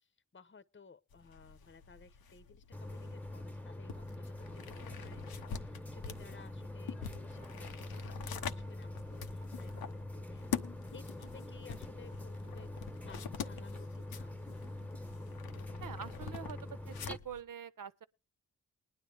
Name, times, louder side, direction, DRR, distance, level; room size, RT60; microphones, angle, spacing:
voice 1, 0.0-10.6 10.9-12.7 13.0-14.7, left 5 dB, 35° left, 1.0 m, -58 dB
sound 1, 1.1-17.4, left 7 dB, 90° left, 1.0 m, -46 dB
sound 2, 2.7-17.2, left 1 dB, 5° left, 1.1 m, -45 dB
voice 2, 15.8-18.0, right 8 dB, 65° right, 1.1 m, -45 dB
20.0 x 10.5 x 3.4 m
supercardioid pair, 40°, 35 cm